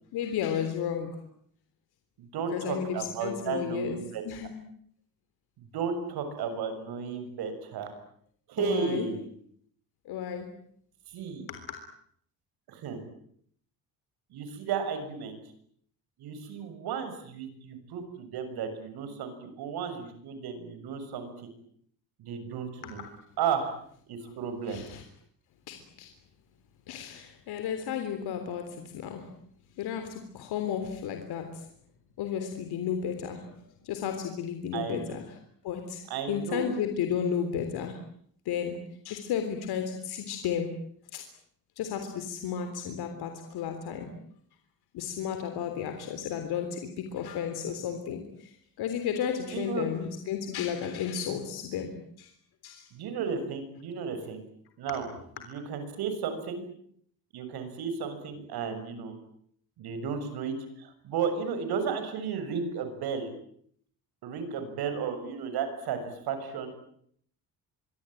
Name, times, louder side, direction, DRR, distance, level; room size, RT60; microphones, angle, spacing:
voice 1, 0.1-1.1 2.5-4.0 4.2-4.5 8.6-9.1 10.1-10.5 11.5-11.8 22.8-23.0 24.2-24.3 24.7-25.0 25.7-26.1 26.9-29.3 29.8-31.7 32.2-35.4 35.6-36.0 36.3-38.0 38.5-38.8 39.0-40.7 41.1-41.2 41.8-44.1 44.9-52.3 52.6-52.9, left 8 dB, 85° left, 6 dB, 3.7 m, -33 dB
voice 2, 2.2-4.2 5.6-7.9 8.5-9.2 11.1-11.5 12.7-13.0 14.3-15.4 16.2-21.5 22.2-23.0 23.4-23.7 24.1-24.8 34.7-35.2 36.1-36.7 49.5-49.9 52.9-54.4 54.8-55.1 55.5-56.6 57.3-59.1 59.8-63.3 64.2-66.7, right 6 dB, 80° right, 9 dB, 6.9 m, -33 dB
25.5 x 23.0 x 9.2 m, 0.66 s
cardioid pair, 165°, 37 cm